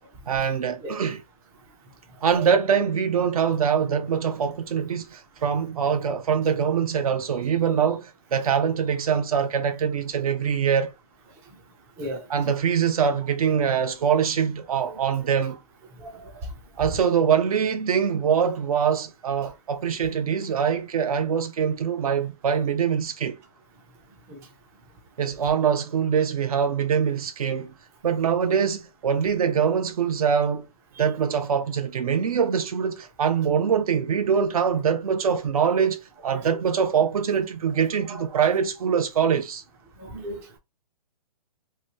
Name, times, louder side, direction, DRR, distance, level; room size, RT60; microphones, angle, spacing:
voice 1, 0.3-1.2 2.2-10.9 12.3-15.6 16.8-23.4 25.2-27.7 28.0-30.7 31.0-39.6, right 7 dB, 65° right, 0.7 m, -23 dB
voice 2, 16.0-16.3 24.3-24.4 36.2-36.4 40.0-40.6, right 1 dB, 15° right, 0.4 m, -36 dB
2.9 x 2.3 x 2.8 m
hypercardioid pair, 150°, 20 cm